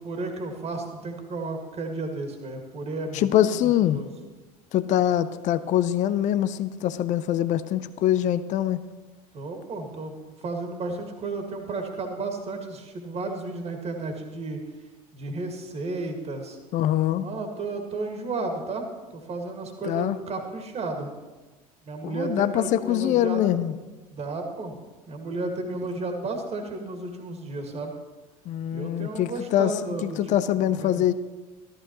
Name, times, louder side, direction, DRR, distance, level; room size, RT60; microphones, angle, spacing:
voice 1, 0.0-4.1 9.3-10.1 10.4-14.6 15.1-16.6 17.1-21.1 21.8-23.7 24.1-24.8 25.1-27.9 28.7-30.2 30.7-31.0, right 3 dB, 35° right, 4 dB, 2.0 m, -33 dB
voice 2, 3.1-4.0 4.7-8.8 16.7-17.3 19.8-20.2 22.0-23.7 25.7-25.8 28.5-29.7 30.0-31.1, left 11 dB, 40° left, 15 dB, 0.5 m, -24 dB
14.0 x 13.5 x 3.0 m, 1.2 s
figure-of-eight pair, 65°, 19 cm